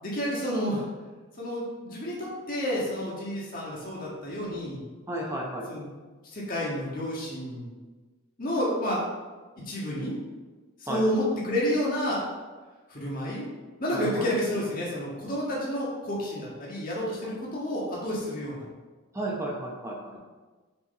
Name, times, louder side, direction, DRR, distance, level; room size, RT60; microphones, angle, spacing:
voice 1, 0.0-0.8 1.4-4.8 5.7-5.9 6.3-7.7 8.4-9.0 9.7-10.1 10.9-12.2 12.9-13.5 13.8-18.7, equal, 40° left, -5 dB, 1.7 m, -30 dB
voice 2, 5.1-5.7 10.9-11.0 13.9-14.3 19.1-20.1, right 1 dB, 15° right, -3 dB, 1.0 m, -33 dB
7.2 x 4.4 x 4.2 m, 1.3 s
head